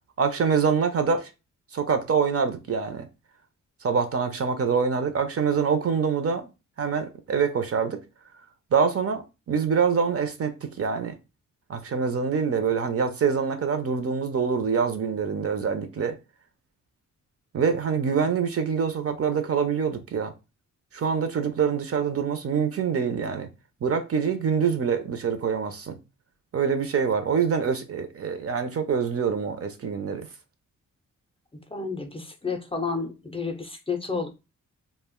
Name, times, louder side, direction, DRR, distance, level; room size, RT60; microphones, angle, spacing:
voice 1, 0.2-1.3 1.7-3.1 3.8-6.5 6.8-8.0 8.7-11.2 11.7-16.2 17.5-20.3 20.9-23.5 23.8-26.0 26.5-30.3, right 6 dB, 45° right, 0.5 m, -25 dB
voice 2, 31.7-34.3, left 4 dB, 20° left, 0.5 m, -31 dB
2.4 x 2.1 x 3.5 m
cardioid pair, 70°, 32 cm